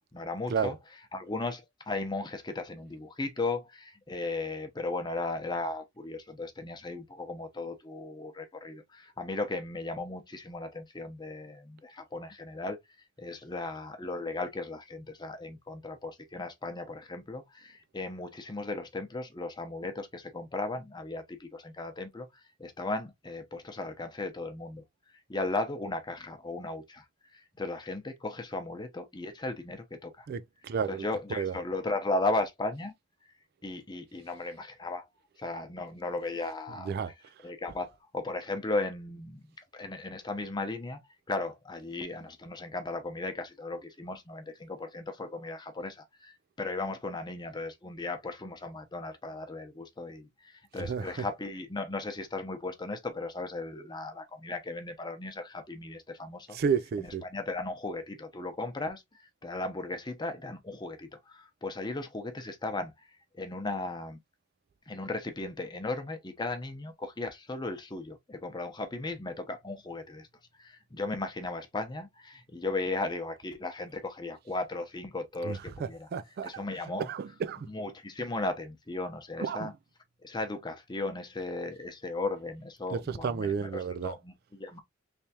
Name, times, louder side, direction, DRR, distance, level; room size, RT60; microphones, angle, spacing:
voice 1, 0.1-0.8 1.1-12.8 13.2-22.3 22.6-24.8 25.3-27.0 27.3-30.3 30.9-32.9 33.6-35.1 35.4-37.1 37.4-39.4 39.7-41.0 41.3-56.6 57.0-63.1 63.3-64.2 64.9-70.3 70.6-76.1 76.4-77.1 77.7-79.7 80.2-84.8, left 2 dB, 20° left, 0.8 m, -36 dB
voice 2, 30.3-31.1 31.4-31.5 36.9-37.1 50.9-51.1 56.5-57.2 75.4-76.6 77.1-77.7 79.4-79.7 82.9-84.1, right 6 dB, 50° right, 0.3 m, -32 dB
3.4 x 3.1 x 2.8 m
head